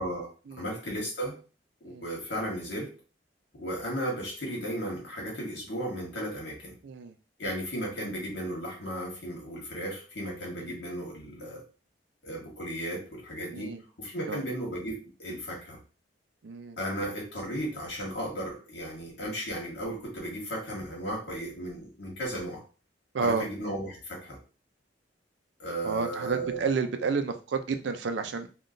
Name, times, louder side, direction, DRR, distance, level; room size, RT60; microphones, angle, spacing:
voice 1, 0.6-1.4 1.8-2.9 3.5-6.8 7.4-11.6 12.2-15.8 16.8-22.6 23.2-24.4 25.6-26.7, right 1 dB, 70° left, -2 dB, 1.5 m, -35 dB
voice 2, 6.8-7.1 10.6-10.8 13.5-13.8 14.3-14.4 16.4-16.8 23.1-23.5 25.8-28.5, right 5 dB, 75° right, 8 dB, 0.4 m, -30 dB
3.6 x 2.3 x 2.6 m, 0.35 s
head